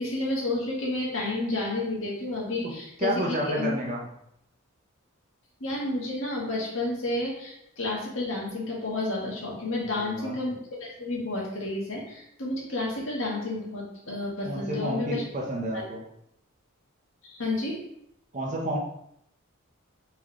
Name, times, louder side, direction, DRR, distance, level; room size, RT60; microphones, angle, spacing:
voice 1, 0.0-3.7 5.6-15.2 15.7-15.8 17.2-17.8, left 2 dB, 65° left, -4 dB, 1.6 m, -31 dB
voice 2, 3.0-4.1 9.8-10.4 14.4-16.0 18.3-18.8, right 1 dB, 35° right, -1 dB, 1.0 m, -30 dB
4.3 x 3.6 x 3.2 m, 0.76 s
head